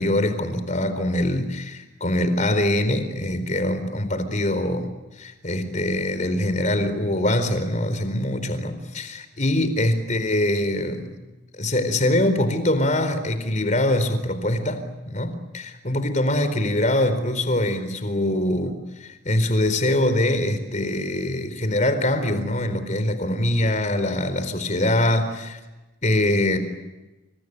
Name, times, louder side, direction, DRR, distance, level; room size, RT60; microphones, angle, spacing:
voice 1, 0.0-4.9 5.2-11.1 11.6-25.6 26.0-26.6, left 1 dB, 40° left, 10 dB, 4.3 m, -23 dB
29.5 x 27.0 x 6.7 m, 1.1 s
head